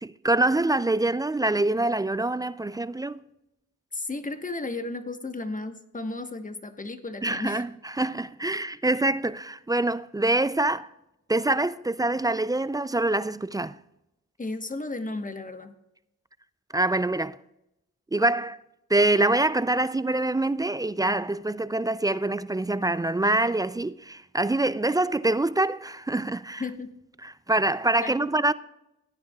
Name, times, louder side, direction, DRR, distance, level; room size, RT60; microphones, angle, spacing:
voice 1, 0.0-3.2 7.2-10.9 11.3-13.8 16.7-17.4 18.1-18.6 18.9-26.6 27.2-28.5, right 2 dB, 15° right, 0.3 m, -25 dB
voice 2, 3.9-7.7 14.4-15.7 26.6-26.9 28.0-28.3, left 2 dB, 25° left, 1.1 m, -34 dB
16.5 x 9.7 x 2.3 m
cardioid pair, 60°, 30 cm